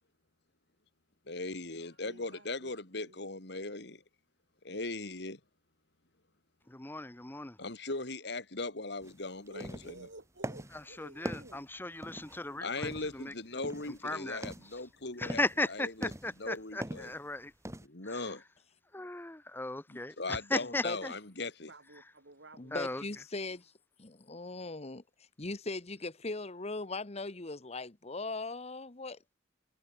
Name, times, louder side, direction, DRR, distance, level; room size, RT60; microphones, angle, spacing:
voice 1, 1.3-4.0 4.6-5.4 7.6-9.9 12.6-15.4 15.7-16.1 16.4-17.1 17.8-18.4 20.2-21.7, left 3 dB, 65° left, 3.0 m, -39 dB
voice 2, 2.0-2.7 3.0-3.2 9.5-11.6 21.7-23.2, right 2 dB, 80° right, 5.8 m, -53 dB
voice 3, 6.7-7.6 10.7-13.3 14.0-14.4 15.2-17.5 18.0-18.3 18.9-21.1 22.7-23.0, left 2 dB, 10° left, 0.9 m, -37 dB
sound 1, 9.0-9.2 9.5-10.0 10.4-10.8 11.2-12.4 12.8-13.2 13.6-14.0 14.3-14.8 15.2-15.6 16.0-16.5 16.8-17.2 17.6-17.9, right 1 dB, 15° right, 5.3 m, -41 dB
voice 4, 22.6-23.7 24.0-25.0 25.4-29.2, left 3 dB, 35° left, 1.3 m, -39 dB
head